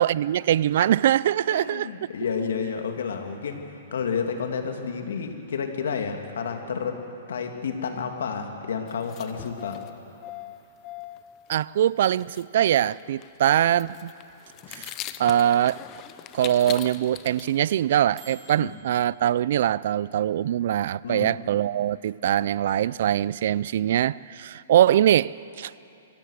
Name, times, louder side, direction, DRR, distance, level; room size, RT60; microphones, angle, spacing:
voice 1, 0.0-1.9 11.5-14.1 14.7-14.9 15.2-15.8 16.3-25.7, right 11 dB, 55° right, 21 dB, 0.4 m, -22 dB
voice 2, 1.5-3.6 3.9-7.0 7.3-9.8 18.6-18.7 21.0-21.4, left 6 dB, 85° left, 4 dB, 2.4 m, -30 dB
sound 1, 8.9-11.3 11.6-11.7 11.8-11.9 12.2-12.4 12.8-18.7, left 13 dB, 25° left, 0.6 m, -41 dB
sound 2, 10.8-19.1, right 2 dB, 25° right, 3.3 m, -53 dB
24.5 x 16.5 x 6.5 m, 2.9 s
hypercardioid pair, 160°, 0 cm